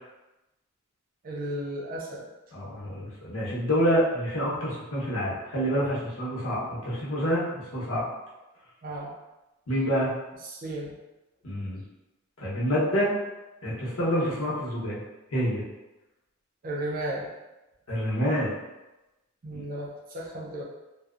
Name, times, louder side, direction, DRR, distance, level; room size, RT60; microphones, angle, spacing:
voice 1, 1.2-2.3 8.8-9.1 10.4-11.0 16.6-17.3 19.4-20.6, right 1 dB, 40° right, -2 dB, 0.5 m, -34 dB
voice 2, 2.5-8.0 9.7-10.1 11.4-11.8 12.4-13.1 13.6-15.0 15.3-15.6 17.9-18.5 19.5-19.6, equal, 80° left, -6 dB, 0.8 m, -27 dB
2.7 x 2.0 x 2.4 m, 1.0 s
head